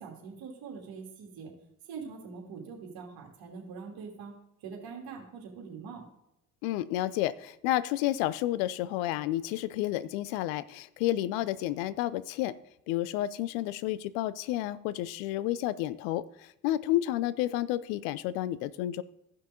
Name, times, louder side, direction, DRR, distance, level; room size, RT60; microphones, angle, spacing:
voice 1, 0.0-1.5 1.9-4.3 4.6-6.1, right 5 dB, 65° right, 0 dB, 2.8 m, -43 dB
voice 2, 6.6-12.6 12.9-19.0, left 14 dB, 75° left, 17 dB, 0.6 m, -31 dB
15.5 x 5.7 x 3.8 m, 0.84 s
hypercardioid pair, 55°, 40 cm